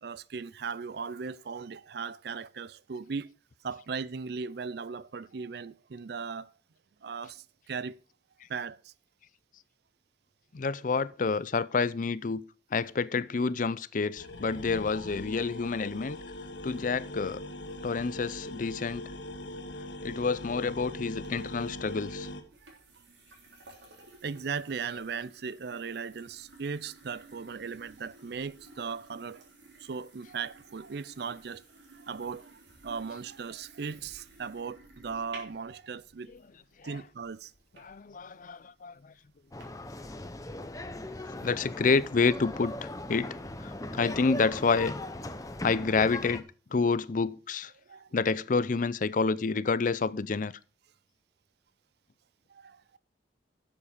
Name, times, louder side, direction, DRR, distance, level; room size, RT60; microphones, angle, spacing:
voice 1, 0.0-3.3 3.6-6.5 7.0-8.0 8.5-8.9 24.2-29.5 29.8-31.6 31.9-36.3 36.8-37.5 43.8-44.0 47.9-48.1 52.5-53.0, right 5 dB, 60° right, 0.5 m, -38 dB
voice 2, 10.5-12.4 12.7-16.2 16.6-17.4 17.8-19.0 20.0-22.3 37.8-39.1 41.4-43.4 43.6-44.9 45.6-46.4 46.7-47.7 48.1-50.5, left 4 dB, 45° left, 0.5 m, -28 dB
sound 1, 14.1-22.4, left 1 dB, 85° left, 1.7 m, -41 dB
sound 2, 21.2-39.6, right 2 dB, 80° right, 3.4 m, -55 dB
sound 3, 39.5-46.4, left 1 dB, 20° left, 0.8 m, -39 dB
11.5 x 7.3 x 4.9 m
head